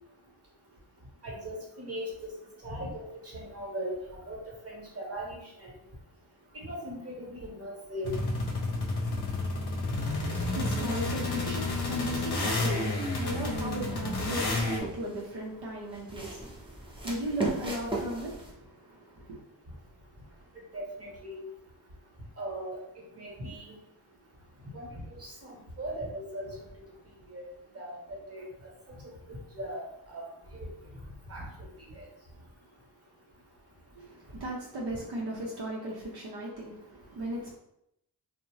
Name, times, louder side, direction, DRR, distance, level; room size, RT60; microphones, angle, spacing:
voice 1, 1.2-2.1 2.6-3.0 3.3-4.0 4.3-4.4 4.6-5.7 6.6-8.1 20.7-21.4 22.4-22.8 23.1-23.7 24.7-26.4 27.3-27.4 27.7-28.0 28.3-28.4 29.3-29.8 30.1-30.2 30.5-30.7 31.3-31.5 31.9-32.0, right 1 dB, 35° right, -2 dB, 1.0 m, -38 dB
sound 1, 8.0-14.8, left 2 dB, 70° left, 0.7 m, -30 dB
voice 2, 10.3-19.4 34.0-37.5, right 1 dB, 70° right, -3 dB, 0.6 m, -37 dB
sound 2, 13.3-13.5 14.1-15.3 15.9-18.5, right 2 dB, 15° right, 0.6 m, -36 dB
2.7 x 2.1 x 3.0 m, 0.79 s
wide cardioid pair, 90°, 41 cm